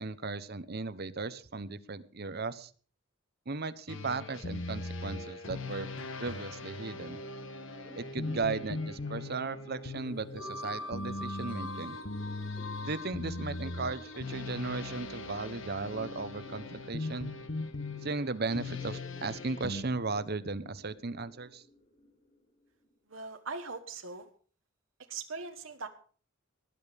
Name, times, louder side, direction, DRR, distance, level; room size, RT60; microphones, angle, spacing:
voice 1, 0.0-2.7 3.5-5.9 6.2-7.2 7.9-12.0 12.9-17.3 18.0-21.6, right 3 dB, 50° right, 14 dB, 1.0 m, -36 dB
sound 1, 3.9-19.8, left 2 dB, 70° left, 1.6 m, -39 dB
sound 2, 6.9-22.9, left 1 dB, 40° left, 4.1 m, -53 dB
voice 2, 23.1-24.3 25.1-25.9, right 4 dB, 80° right, 4 dB, 1.4 m, -40 dB
19.5 x 10.5 x 5.2 m, 0.43 s
head